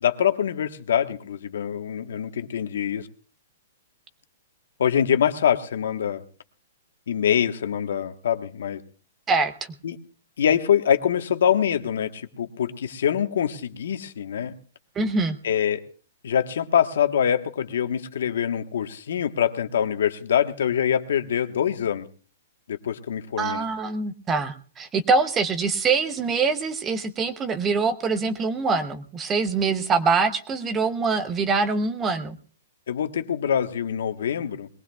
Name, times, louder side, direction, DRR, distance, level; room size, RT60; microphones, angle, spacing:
voice 1, 0.0-3.1 4.8-6.2 7.1-8.8 9.8-10.0 10.4-14.5 15.4-15.8 16.2-22.1 22.7-23.6 32.9-34.7, left 9 dB, 75° left, 8 dB, 1.2 m, -24 dB
voice 2, 15.0-15.4 23.4-32.4, right 4 dB, 15° right, 10 dB, 0.7 m, -24 dB
21.5 x 18.5 x 2.3 m, 0.39 s
hypercardioid pair, 165°, 0 cm